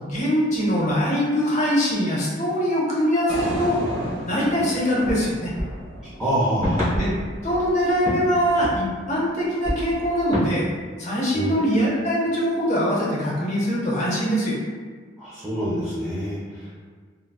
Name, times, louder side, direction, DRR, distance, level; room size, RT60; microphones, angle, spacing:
voice 1, 0.0-3.8 4.3-5.5 7.0-7.1 7.4-10.6 11.0-14.5, equal, 40° left, -5 dB, 0.8 m, -22 dB
sound 1, 3.3-7.4, right 1 dB, 90° right, 0.9 m, -33 dB
sound 2, 5.1-9.3 9.6-10.6, equal, 40° right, 1.3 m, -29 dB
voice 2, 6.2-6.9 11.3-11.6 15.2-16.8, equal, 5° right, -11 dB, 0.5 m, -26 dB
3.7 x 2.1 x 2.3 m, 1.5 s
head